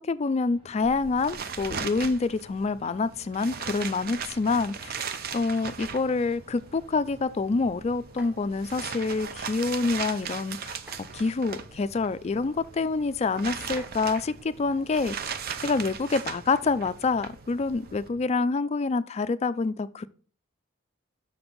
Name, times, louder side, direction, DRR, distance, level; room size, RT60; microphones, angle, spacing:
voice 1, 0.1-4.9 5.3-15.4 15.6-20.1, left 4 dB, 30° left, 0.3 m, -27 dB
sound 1, 0.5-18.3, right 1 dB, 25° right, 0.9 m, -54 dB
sound 2, 0.8-18.1, right 6 dB, 50° right, 0.5 m, -39 dB
sound 3, 8.1-8.6 10.7-11.3 12.3-12.4 13.6-14.3 16.6-17.0 18.2-18.6, right 1 dB, 5° right, 0.6 m, -51 dB
6.5 x 4.4 x 5.2 m
head